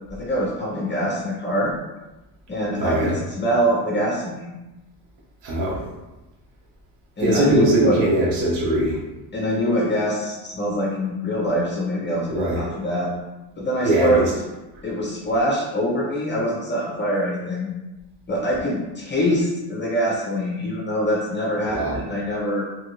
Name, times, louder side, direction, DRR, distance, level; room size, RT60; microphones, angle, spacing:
voice 1, 0.1-1.7 2.5-4.5 7.2-8.0 9.3-13.1 13.6-14.3 14.8-17.7 18.3-22.7, equal, 25° left, -4 dB, 0.6 m, -24 dB
voice 2, 2.7-3.2 5.4-5.8 7.2-9.0 12.3-12.6 13.8-14.3 21.7-22.0, right 1 dB, 85° right, -5 dB, 1.1 m, -21 dB
3.0 x 2.5 x 2.9 m, 1.1 s
cardioid pair, 120°, 43 cm